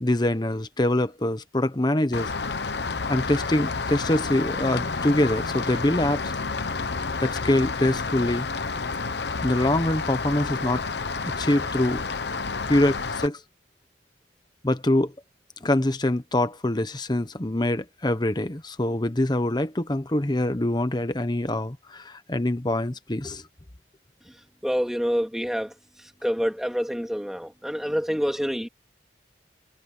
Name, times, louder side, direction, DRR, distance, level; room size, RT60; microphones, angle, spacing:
voice 1, 0.0-2.3 3.1-6.3 7.2-8.5 9.4-10.9 11.2-12.0 12.6-13.4 14.6-15.1 15.6-23.4, left 1 dB, 25° left, 1.0 m, -24 dB
Rain, 2.1-13.3, left 4 dB, 65° left, 1.0 m, -30 dB
voice 2, 24.6-25.7 26.2-28.7, equal, ahead, 3.0 m, -27 dB
head